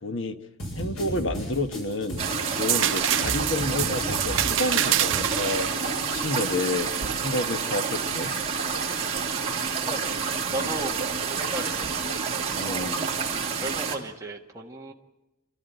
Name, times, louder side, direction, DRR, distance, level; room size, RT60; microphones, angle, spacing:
voice 1, 0.0-0.4 0.7-2.2 2.5-5.7 6.1-6.9 7.2-8.3 10.5-10.7 12.5-13.0, left 2 dB, 60° left, 8 dB, 1.4 m, -30 dB
sound 1, 0.6-6.6, equal, 90° left, 7.8 m, -35 dB
sound 2, 2.2-14.0, right 6 dB, 30° right, 2.8 m, -29 dB
sound 3, 2.7-8.3 8.8-9.8 11.8-12.0, right 12 dB, 60° right, 0.8 m, -29 dB
voice 2, 9.8-10.9 11.3-12.2 12.7-12.9 13.6-14.9, right 2 dB, 15° right, -1 dB, 1.4 m, -35 dB
29.0 x 13.0 x 8.1 m, 1.0 s
head